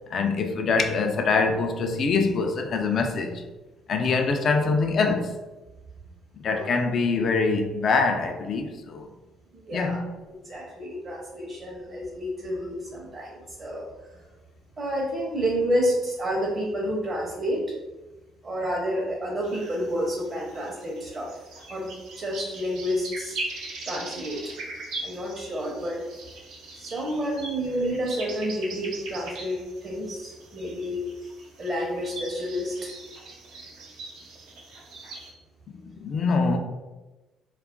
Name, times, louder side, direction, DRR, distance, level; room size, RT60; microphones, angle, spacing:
voice 1, 0.1-3.4 3.9-5.4 6.4-9.1 9.7-10.1 35.8-36.6, left 4 dB, 55° left, 0.4 m, -24 dB
voice 2, 9.5-10.0 10.3-14.2 14.8-17.6 18.4-21.3 21.7-23.4 23.8-24.5 25.0-26.0 26.8-31.0 31.6-32.9, equal, 40° right, 0.7 m, -30 dB
sound 1, 19.4-35.3, right 2 dB, 85° right, 0.6 m, -40 dB
2.3 x 2.1 x 3.5 m
cardioid pair, 90°, 0 cm